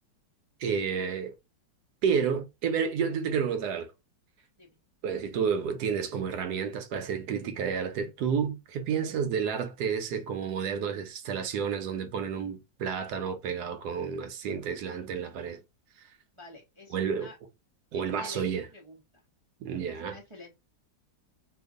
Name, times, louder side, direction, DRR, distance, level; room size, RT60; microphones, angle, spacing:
voice 1, 0.6-1.3 2.0-3.9 5.0-15.6 16.9-17.3 17.9-18.7 19.6-20.2, right 7 dB, 70° right, 1.1 m, -30 dB
voice 2, 16.3-17.4 17.9-19.2 19.9-20.6, left 2 dB, 45° right, 0.4 m, -49 dB
2.9 x 2.5 x 3.5 m
omnidirectional pair, 1.9 m